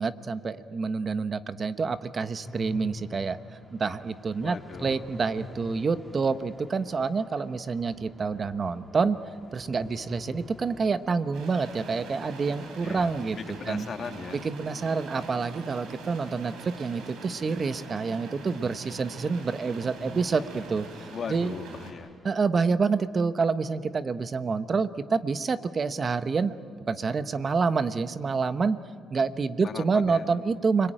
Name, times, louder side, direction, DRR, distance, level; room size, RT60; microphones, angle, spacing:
voice 1, 0.0-3.4 3.7-9.2 9.5-13.4 13.7-13.9 14.4-20.9 21.3-21.5 22.2-28.8 29.1-30.9, right 4 dB, 40° right, 11 dB, 1.0 m, -27 dB
sound 1, 2.4-22.4, left 2 dB, 5° right, 2.2 m, -49 dB
voice 2, 4.4-5.0 12.8-14.4 21.1-22.1 29.6-30.3, left 6 dB, 55° left, 6 dB, 2.0 m, -38 dB
sound 2, 11.3-21.9, right 3 dB, 85° right, 4.2 m, -43 dB
29.5 x 22.0 x 9.0 m, 2.2 s
cardioid pair, 90°, 0 cm